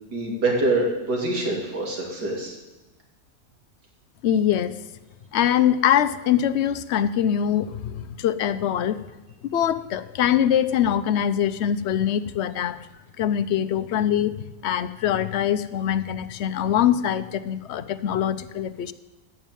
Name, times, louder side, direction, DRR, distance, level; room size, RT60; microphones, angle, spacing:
voice 1, 0.1-2.5, right 2 dB, 80° right, 0 dB, 3.5 m, -25 dB
voice 2, 4.2-4.8 5.3-9.0 9.5-12.8 13.2-18.9, left 10 dB, 55° left, 12 dB, 0.8 m, -23 dB
16.0 x 6.4 x 9.2 m, 1.1 s
omnidirectional pair, 1.7 m